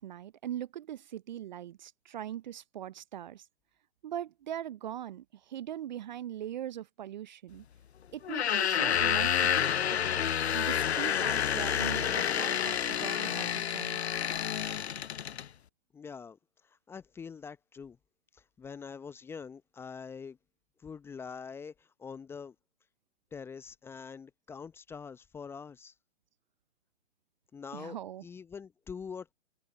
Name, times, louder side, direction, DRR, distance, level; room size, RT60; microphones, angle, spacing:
voice 1, 0.0-3.5 4.0-7.6 8.1-10.0 10.5-14.0 27.7-28.2, right 11 dB, 40° right, 0.7 m, -41 dB
sound 1, 8.2-15.5, left 9 dB, 60° left, 0.8 m, -29 dB
voice 2, 15.9-18.0 18.3-20.4 20.8-22.6 23.3-25.9 27.5-29.3, left 6 dB, 5° left, 0.8 m, -44 dB
open air
figure-of-eight pair, 125°, 36 cm